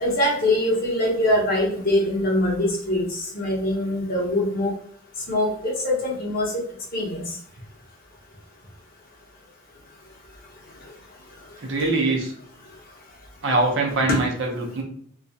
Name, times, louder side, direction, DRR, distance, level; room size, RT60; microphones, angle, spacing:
voice 1, 0.0-3.0 3.3-4.7 5.3-6.5 6.9-7.2 14.1-14.2, left 1 dB, 40° left, -3 dB, 0.7 m, -23 dB
voice 2, 11.6-12.3 13.4-14.8, right 2 dB, 60° right, 0 dB, 0.6 m, -23 dB
2.3 x 2.1 x 2.6 m, 0.64 s
head